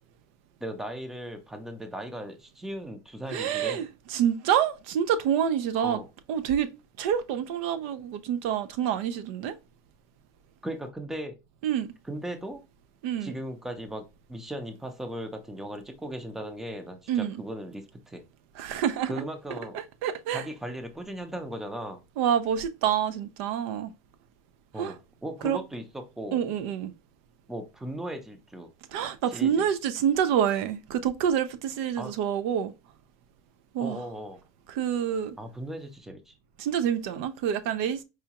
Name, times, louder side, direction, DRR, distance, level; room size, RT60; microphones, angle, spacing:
voice 1, 0.6-3.8 5.8-6.1 10.6-11.4 12.1-12.6 13.2-18.2 19.1-19.8 20.3-22.0 24.7-26.4 27.5-28.7 29.3-29.7 32.0-32.1 33.8-34.4 35.4-36.3, right 1 dB, 5° right, 0.5 m, -37 dB
voice 2, 3.3-6.0 6.3-6.7 7.0-9.6 11.6-11.9 13.0-13.3 17.1-17.4 18.6-19.2 19.7-20.4 22.2-23.9 24.8-24.9 25.4-25.6 26.3-26.9 28.9-32.7 33.7-34.0 34.7-35.3 36.6-38.0, right 9 dB, 60° right, 0.4 m, -27 dB
4.7 x 2.2 x 2.8 m
supercardioid pair, 150°, 9 cm